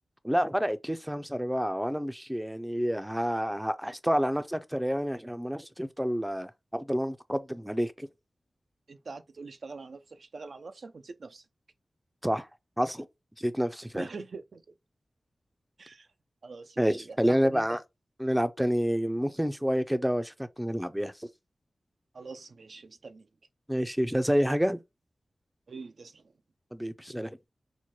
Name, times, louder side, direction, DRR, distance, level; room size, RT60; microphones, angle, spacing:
voice 1, 0.2-8.1 12.2-12.5 12.8-13.1 13.4-14.1 16.8-17.8 18.2-21.1 23.7-24.8 26.7-27.3, equal, 5° right, 0.5 m, -28 dB
voice 2, 8.9-11.4 13.9-14.6 15.8-16.1 16.4-17.8 22.1-23.3 25.7-26.2, right 4 dB, 75° right, 0.4 m, -43 dB
4.3 x 2.1 x 3.0 m
cardioid pair, 45°, 0 cm